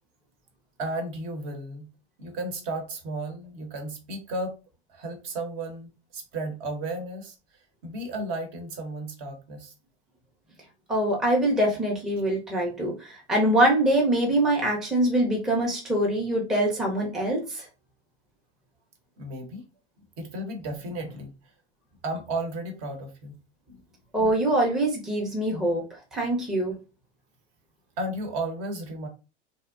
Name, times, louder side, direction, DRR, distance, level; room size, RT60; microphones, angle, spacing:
voice 1, 0.8-1.9 2.2-4.5 4.9-7.3 7.8-9.7 19.2-19.6 20.2-21.3 22.0-23.4 23.7-23.8 28.0-29.1, right 2 dB, 50° right, 5 dB, 0.9 m, -34 dB
voice 2, 10.9-17.7 24.1-25.8 26.1-26.7, right 1 dB, ahead, -2 dB, 0.5 m, -24 dB
2.6 x 2.0 x 2.4 m, 0.30 s
hypercardioid pair, 95°, 33 cm